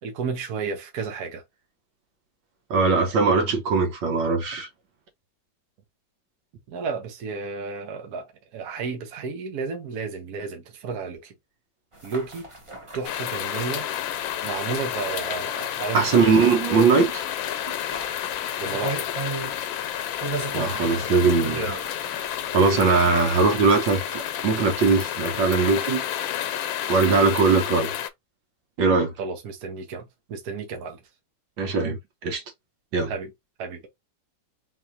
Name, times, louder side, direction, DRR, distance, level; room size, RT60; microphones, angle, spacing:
voice 1, 0.0-1.4 6.7-11.3 12.0-12.5 12.9-13.9 14.4-16.3 18.6-19.2 29.2-31.0 33.1-33.3 33.6-33.9, right 5 dB, 55° right, 1.4 m, -32 dB
voice 2, 2.7-4.7 15.9-17.2 20.5-21.7 22.5-26.0 26.9-27.9 28.8-29.1 31.6-32.4 32.9-33.1, right 4 dB, 75° right, 1.8 m, -20 dB
sound 1, 11.9-25.5, right 3 dB, 35° right, 0.4 m, -38 dB
sound 2, 13.0-28.1, left 10 dB, 85° left, 1.4 m, -30 dB
4.1 x 3.1 x 2.8 m
omnidirectional pair, 2.1 m